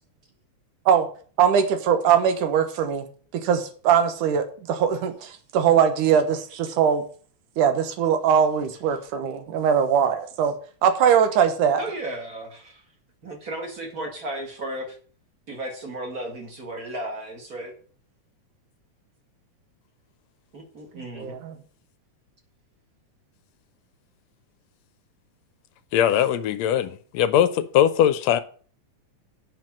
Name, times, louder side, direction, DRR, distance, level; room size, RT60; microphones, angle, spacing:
voice 1, 1.4-3.0 3.4-7.0 7.6-10.5 10.8-11.8 21.2-21.5, right 8 dB, 90° right, 2.7 m, -21 dB
voice 2, 11.8-12.8 13.2-15.0 15.5-17.7 20.5-21.4, right 1 dB, 30° right, 2.2 m, -34 dB
voice 3, 25.9-28.4, left 10 dB, 75° left, 1.8 m, -20 dB
9.1 x 5.9 x 7.4 m
omnidirectional pair, 3.5 m